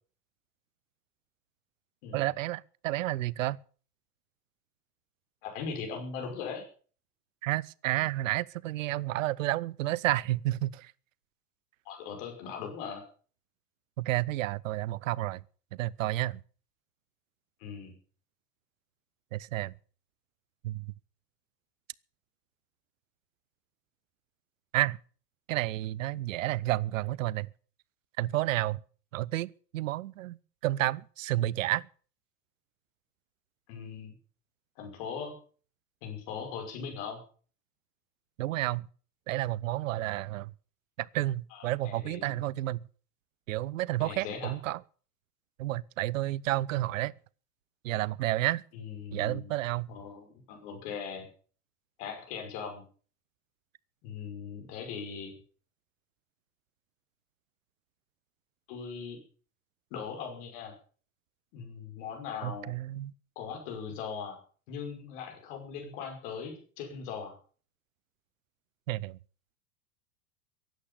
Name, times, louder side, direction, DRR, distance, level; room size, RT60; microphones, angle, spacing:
voice 1, 2.1-3.6 7.4-10.9 14.0-15.4 15.7-16.4 19.3-19.7 20.6-20.9 24.7-25.0 25.5-27.5 28.2-28.8 29.1-30.4 30.6-31.8 38.4-38.9 39.3-40.5 41.0-42.8 43.5-44.8 45.6-47.1 47.8-48.6 49.1-49.9 62.4-63.1 68.9-69.2, right 16 dB, 55° right, 0.7 m, -31 dB
voice 2, 5.4-6.7 11.9-13.0 17.6-17.9 33.7-34.1 34.8-35.3 36.0-37.2 41.5-42.4 44.0-44.5 48.7-49.5 49.9-51.3 52.0-52.8 54.0-55.3 58.7-59.2 59.9-60.7 61.5-62.7 63.4-64.4 64.7-67.4, left 6 dB, 50° left, 5.7 m, -39 dB
15.5 x 11.5 x 7.0 m
figure-of-eight pair, 90°, 48 cm